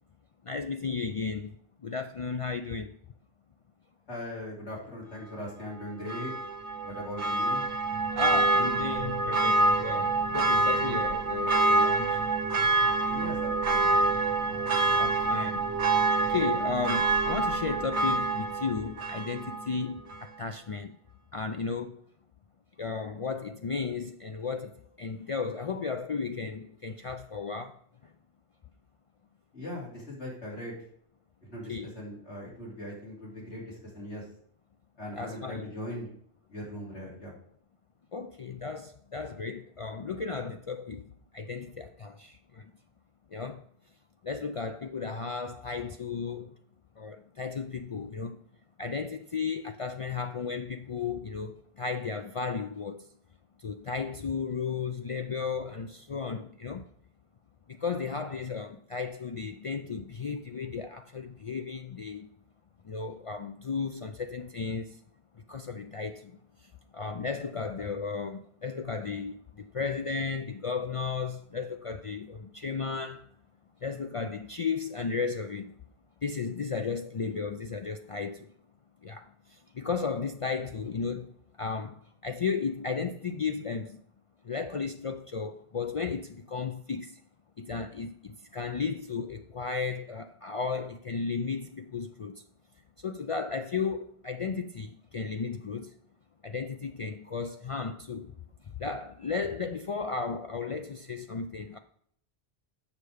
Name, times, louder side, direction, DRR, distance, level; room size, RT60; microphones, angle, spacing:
voice 1, 0.5-1.5 1.8-2.9 8.1-12.2 15.0-15.6 16.2-21.0 21.3-22.0 22.8-27.8 31.7-31.9 35.2-35.6 38.1-42.7 43.3-43.6 44.2-46.5 47.0-48.4 48.8-53.1 53.6-56.9 57.7-62.3 62.8-65.0 65.5-66.4 66.9-73.3 73.8-75.8 76.2-78.5 79.0-84.0 84.4-87.2 87.6-92.4 93.0-95.9 96.4-98.3 98.8-101.8, left 5 dB, 60° left, 0.3 m, -34 dB
voice 2, 4.1-6.5 6.8-7.6 13.1-13.9 29.5-30.7 31.4-34.3 35.0-36.1 36.5-37.3, left 1 dB, 85° left, 3.5 m, -40 dB
Church bell, 6.1-19.7 20.1-20.2, right 2 dB, 90° right, 1.2 m, -26 dB
7.3 x 6.5 x 4.9 m
omnidirectional pair, 1.1 m